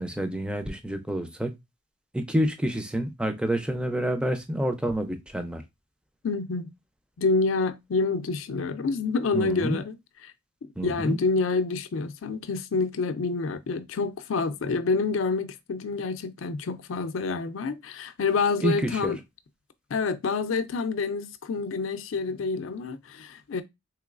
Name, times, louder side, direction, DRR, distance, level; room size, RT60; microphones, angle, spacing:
voice 1, 0.0-1.5 2.1-5.6 9.3-9.8 10.8-11.2 18.6-19.1, right 1 dB, 5° right, 0.4 m, -28 dB
voice 2, 6.2-6.7 7.2-10.0 10.8-19.2 19.9-23.6, left 4 dB, 80° left, 0.4 m, -27 dB
3.8 x 3.0 x 2.4 m
head